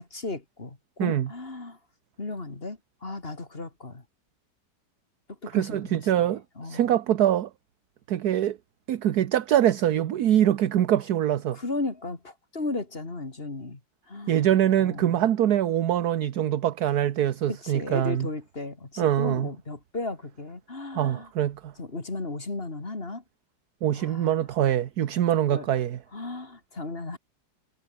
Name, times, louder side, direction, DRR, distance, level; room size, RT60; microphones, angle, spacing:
voice 1, 0.0-1.8 2.2-4.0 5.3-6.9 11.5-13.8 14.1-14.5 14.8-15.2 17.5-21.3 21.8-23.2 23.9-24.4 25.5-25.7 26.1-27.2, left 3 dB, 30° left, 2.8 m, -35 dB
voice 2, 5.5-7.5 8.1-8.6 8.9-11.6 14.3-18.3 19.0-19.5 20.9-21.7 23.8-26.0, right 11 dB, 65° right, 1.4 m, -24 dB
omnidirectional pair, 1.9 m